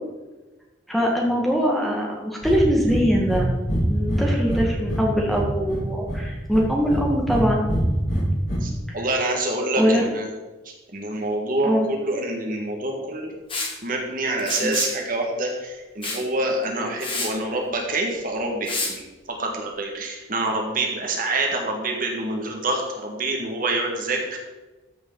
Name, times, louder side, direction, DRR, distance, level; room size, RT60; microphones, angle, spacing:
voice 1, 0.9-3.5 3.9-7.6 8.9-9.1 9.8-10.0 11.6-11.9 14.6-14.8, equal, ahead, -2 dB, 1.6 m, -22 dB
Breathing, 2.4-2.6 2.8-3.0 3.3-3.4 3.7-5.0 5.3-6.2 6.5-7.4 7.7-8.6, equal, 50° left, 3.9 m, -25 dB
voice 2, 8.6-10.3 10.9-13.3 13.8-24.4, right 2 dB, 45° right, 1 dB, 1.7 m, -26 dB
Liquid, 13.5-13.7 14.4-15.0 16.0-16.2 16.6-16.7 17.0-17.3 18.7-18.9, left 3 dB, 25° left, 1.9 m, -28 dB
14.0 x 6.6 x 3.9 m, 1.2 s
head